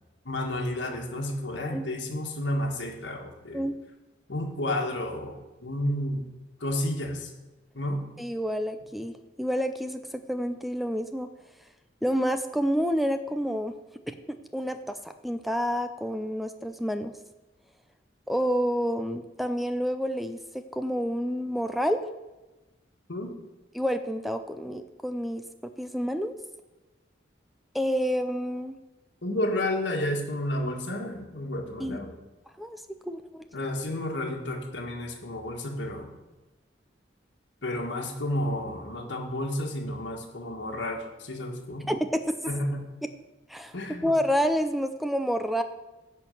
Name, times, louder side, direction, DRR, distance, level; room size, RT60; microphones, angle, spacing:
voice 1, 0.2-3.6 4.3-6.2 6.6-7.3 7.7-8.0 23.1-23.3 29.2-32.1 33.5-36.1 37.6-41.9 42.5-42.8 43.7-44.1, left 1 dB, 75° left, 0 dB, 1.6 m, -31 dB
voice 2, 8.2-11.3 12.0-13.7 14.1-17.1 18.3-22.1 23.7-26.3 27.7-28.8 31.8-32.0 32.6-33.5 41.9-42.3 43.5-43.8 44.0-45.6, equal, ahead, 9 dB, 0.4 m, -29 dB
11.0 x 4.5 x 7.6 m, 1.1 s
head